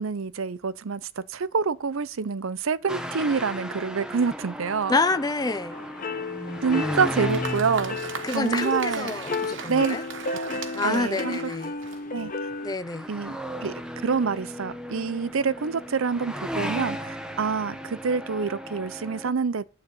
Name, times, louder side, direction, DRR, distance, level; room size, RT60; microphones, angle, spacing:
voice 1, 0.0-5.0 6.6-8.0 8.3-9.1 9.7-10.0 10.3-11.5 12.1-12.3 13.1-13.7 14.0-19.6, right 5 dB, 80° right, 0.6 m, -27 dB
sound 1, 2.9-11.2 11.8-12.2 12.5-19.3, equal, 5° right, 0.9 m, -36 dB
voice 2, 4.9-5.8 8.2-10.0 10.7-11.7 12.6-13.1, left 3 dB, 20° left, 0.5 m, -27 dB
sound 2, 5.7-12.8, left 3 dB, 40° left, 0.9 m, -33 dB
Applause, 6.8-12.4, right 5 dB, 65° right, 1.1 m, -38 dB
11.5 x 4.1 x 7.6 m
head